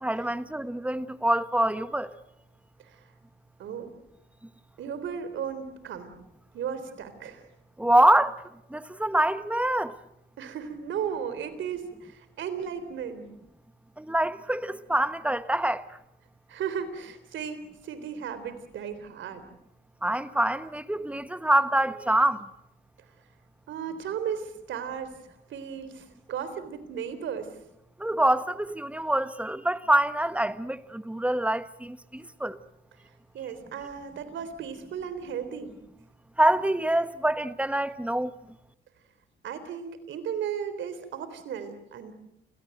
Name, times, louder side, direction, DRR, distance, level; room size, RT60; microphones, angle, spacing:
voice 1, 0.0-2.1 7.8-8.3 8.7-9.9 14.0-15.8 20.0-22.4 28.0-32.6 36.4-38.3, right 1 dB, 5° right, 1.2 m, -25 dB
voice 2, 4.8-6.1 6.5-7.5 10.4-13.3 16.5-19.5 23.7-25.1 25.5-27.5 33.3-35.7 39.4-42.1, right 7 dB, 75° right, 3.7 m, -35 dB
29.0 x 18.0 x 8.0 m
cardioid pair, 90°, 20 cm